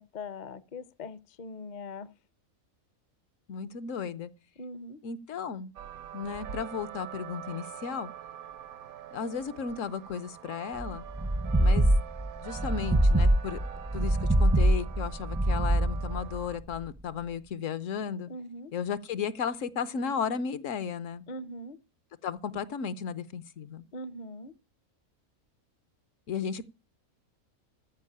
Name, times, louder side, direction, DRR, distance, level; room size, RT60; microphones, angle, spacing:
voice 1, 0.0-2.1 4.6-5.0 18.3-18.7 21.3-21.8 23.9-24.5, left 2 dB, 45° left, 0.6 m, -41 dB
voice 2, 3.5-4.3 5.0-5.7 6.1-8.1 9.1-11.1 11.6-12.0 12.4-13.6 13.9-18.3 18.7-21.2 22.2-23.9 26.3-26.6, left 6 dB, 65° left, 1.1 m, -34 dB
sound 1, 5.8-16.6, right 10 dB, 80° right, 1.3 m, -44 dB
sound 2, 10.8-16.9, right 1 dB, 15° right, 0.5 m, -25 dB
14.0 x 5.1 x 8.5 m
omnidirectional pair, 1.5 m